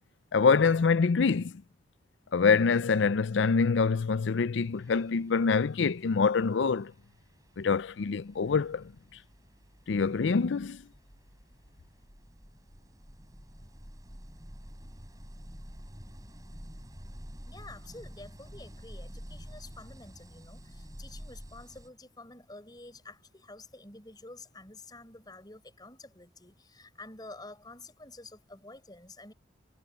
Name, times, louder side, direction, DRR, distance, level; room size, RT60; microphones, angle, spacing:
voice 1, 0.3-1.5 2.3-6.9 7.6-8.9 9.9-10.8, left 5 dB, 70° left, 0.5 m, -25 dB
sound 1, 4.1-4.3 4.6-21.9, equal, 20° right, 5.0 m, -49 dB
voice 2, 17.5-29.3, left 2 dB, 20° left, 5.7 m, -49 dB
head